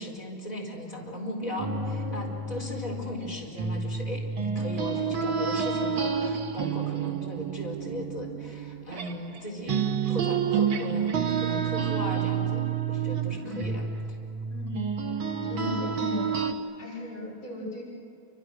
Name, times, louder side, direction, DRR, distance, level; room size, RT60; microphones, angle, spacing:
voice 1, 0.0-13.8, left 1 dB, 20° left, -2 dB, 4.8 m, -37 dB
sound 1, 1.6-9.4 9.7-16.5, right 6 dB, 70° right, 2.3 m, -29 dB
voice 2, 15.4-16.3 16.8-17.8, left 2 dB, 40° left, -5 dB, 7.5 m, -36 dB
29.0 x 26.5 x 6.5 m, 2.5 s
omnidirectional pair, 2.3 m